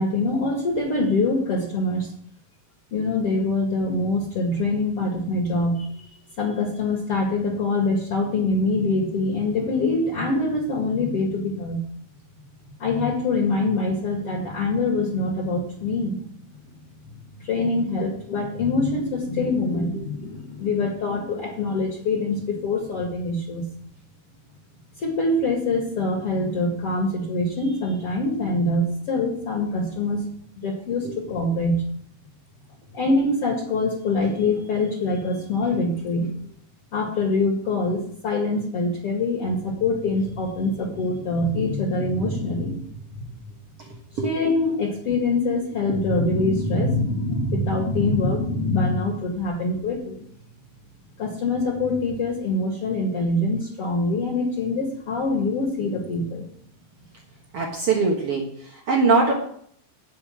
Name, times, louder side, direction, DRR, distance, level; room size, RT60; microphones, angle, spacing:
voice 1, 0.0-2.1 2.9-5.9 6.4-11.8 12.8-16.2 16.5-16.6 17.4-23.7 25.0-30.2 30.6-31.8 32.9-36.3 36.9-43.2 44.2-50.2 51.2-56.5, left 2 dB, 45° left, 1 dB, 2.1 m, -24 dB
voice 2, 57.5-59.3, right 4 dB, 75° right, -1 dB, 1.3 m, -22 dB
13.0 x 5.1 x 8.9 m, 0.63 s
omnidirectional pair, 5.3 m